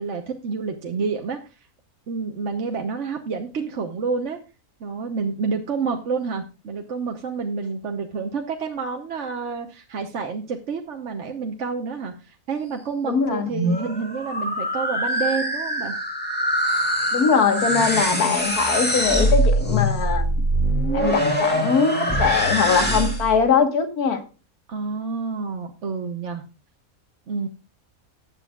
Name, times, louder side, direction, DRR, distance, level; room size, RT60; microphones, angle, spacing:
voice 1, 0.0-1.7 2.1-4.4 4.8-16.0 24.7-26.4 27.3-27.5, right 5 dB, 55° right, 1.2 m, -29 dB
voice 2, 13.1-13.5 17.1-20.4 20.9-24.2, left 6 dB, 85° left, 1.9 m, -21 dB
sound 1, 13.4-23.4, equal, 5° left, 2.6 m, -23 dB
18.5 x 7.6 x 2.3 m
omnidirectional pair, 1.6 m